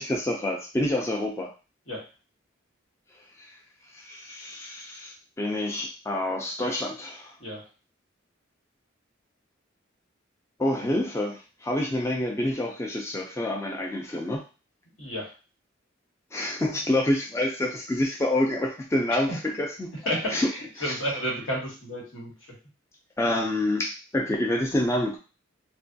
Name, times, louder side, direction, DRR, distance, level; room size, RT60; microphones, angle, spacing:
voice 1, 0.0-1.5 3.4-3.5 3.9-7.3 10.6-14.4 16.3-19.9 20.3-20.5 20.8-21.0 23.2-25.2, left 1 dB, 15° left, 0 dB, 0.4 m, -27 dB
voice 2, 15.0-15.3 19.1-19.4 20.0-22.3, equal, 90° left, -3 dB, 1.3 m, -31 dB
3.3 x 2.2 x 2.6 m, 0.33 s
head